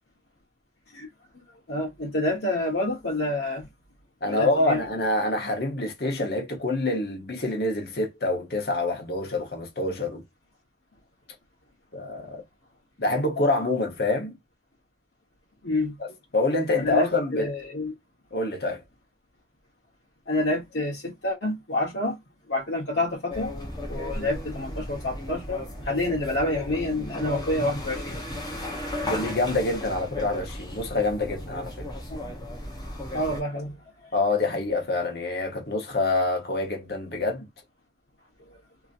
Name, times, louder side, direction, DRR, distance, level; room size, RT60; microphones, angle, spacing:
voice 1, 1.7-3.7 4.2-4.8 15.6-16.0 16.7-17.9 20.3-22.2 22.5-23.5 23.9-28.2 32.1-32.2 33.1-33.8, left 1 dB, 90° left, 1.0 m, -28 dB
voice 2, 4.2-10.2 11.9-12.4 13.0-14.3 16.0-16.1 16.3-17.5 18.3-18.8 24.2-24.3 29.0-31.9 34.1-37.5, left 2 dB, 60° left, 0.9 m, -26 dB
sound 1, 23.3-33.4, left 1 dB, 20° left, 0.9 m, -35 dB
2.9 x 2.6 x 2.5 m
head